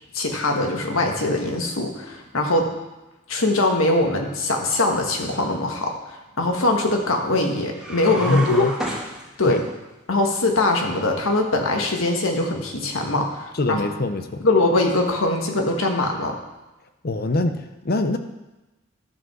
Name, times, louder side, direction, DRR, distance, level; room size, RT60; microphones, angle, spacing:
voice 1, 0.1-2.7 3.3-8.7 9.4-9.6 10.1-13.8 14.4-16.4, left 2 dB, 85° left, 2 dB, 1.6 m, -22 dB
sound 1, 7.7-9.8, right 1 dB, ahead, 2.1 m, -31 dB
voice 2, 8.2-8.7 9.4-9.6 13.5-14.5 17.0-18.2, left 2 dB, 50° left, 8 dB, 0.7 m, -23 dB
13.0 x 5.2 x 6.2 m, 1.0 s
head